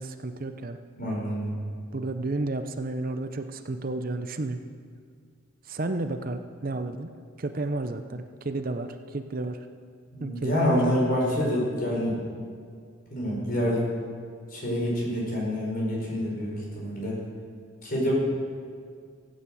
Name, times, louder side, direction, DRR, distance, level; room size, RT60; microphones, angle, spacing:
voice 1, 0.0-0.8 1.9-4.6 5.6-7.1 7.4-9.7 10.2-10.8, right 2 dB, 45° right, 8 dB, 0.6 m, -32 dB
voice 2, 1.0-1.5 10.1-12.2 13.1-13.8 14.5-17.2 17.8-18.1, equal, 45° left, -4 dB, 5.0 m, -27 dB
16.0 x 8.8 x 7.7 m, 2.1 s
head